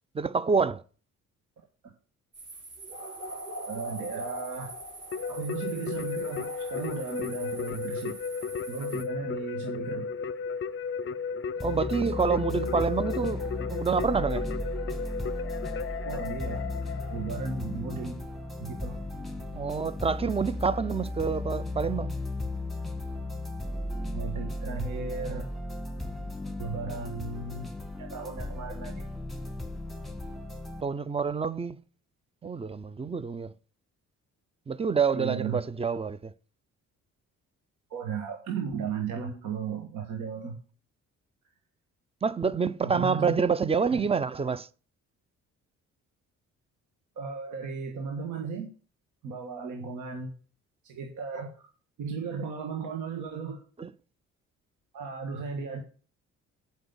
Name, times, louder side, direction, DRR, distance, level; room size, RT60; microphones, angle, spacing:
voice 1, 0.1-0.8 11.6-14.5 19.5-22.1 30.8-31.8 32.4-33.5 34.7-36.3 42.2-44.7 53.8-53.9, right 5 dB, 20° right, 0.5 m, -27 dB
sound 1, 2.3-9.0, right 1 dB, 40° right, 3.5 m, -42 dB
voice 2, 3.6-4.7 5.3-8.2 8.7-10.1 12.5-12.7 16.0-16.6 17.1-18.2 18.6-19.0 24.1-25.5 26.6-27.7 28.0-29.1 35.1-35.6 37.9-40.6 42.8-43.3 47.2-48.7 49.2-50.3 50.8-51.7 52.0-53.6 54.9-55.8, right 5 dB, 80° right, 1.7 m, -35 dB
Keyboard (musical), 5.1-17.6, left 5 dB, 40° left, 0.6 m, -34 dB
sound 2, 11.6-30.8, left 1 dB, ahead, 1.7 m, -35 dB
7.7 x 5.3 x 7.1 m
cardioid pair, 90°, 30 cm